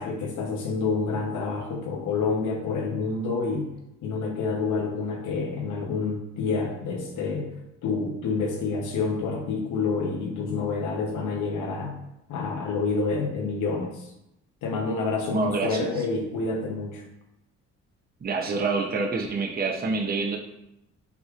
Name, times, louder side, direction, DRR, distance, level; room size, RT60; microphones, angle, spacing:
voice 1, 0.0-3.7 4.0-7.6 7.8-12.0 12.3-14.1 14.6-17.0, left 4 dB, 80° left, 2 dB, 1.0 m, -28 dB
voice 2, 15.3-16.0 18.2-20.4, right 4 dB, 30° right, 1 dB, 0.7 m, -27 dB
7.0 x 3.0 x 2.5 m, 0.85 s
cardioid pair, 90°, 30 cm